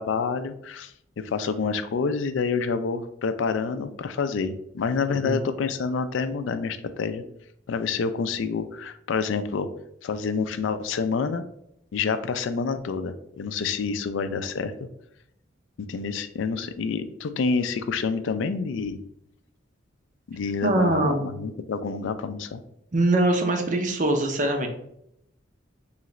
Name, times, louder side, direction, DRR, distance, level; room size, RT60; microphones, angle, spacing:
voice 1, 0.0-7.2 7.7-9.7 10.0-11.4 11.9-14.7 15.8-19.0 20.3-22.6, left 5 dB, 70° left, 10 dB, 0.3 m, -28 dB
voice 2, 5.1-5.4 20.6-21.2 22.9-24.7, right 2 dB, 40° right, 5 dB, 0.6 m, -23 dB
3.2 x 3.0 x 3.7 m, 0.76 s
head